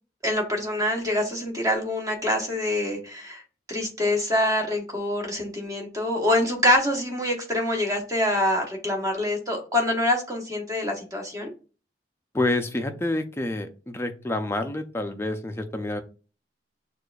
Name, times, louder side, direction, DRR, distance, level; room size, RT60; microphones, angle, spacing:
voice 1, 0.2-3.4 3.7-11.5, left 1 dB, 20° right, 2 dB, 1.0 m, -25 dB
voice 2, 12.3-16.0, left 2 dB, 15° left, 6 dB, 0.5 m, -28 dB
6.4 x 2.5 x 2.3 m, 0.34 s
head